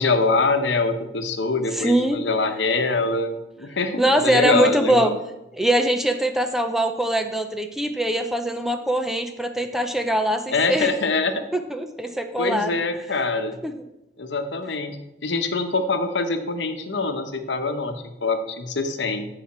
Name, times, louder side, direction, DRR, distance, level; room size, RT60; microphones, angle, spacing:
voice 1, 0.0-5.1 10.5-11.4 12.4-13.6 14.2-19.3, left 3 dB, 80° left, 7 dB, 0.9 m, -24 dB
voice 2, 1.7-2.2 4.0-5.1 5.5-10.9 11.5-12.8 13.6-13.7, right 1 dB, ahead, 6 dB, 0.5 m, -22 dB
14.5 x 5.0 x 4.3 m, 0.92 s
head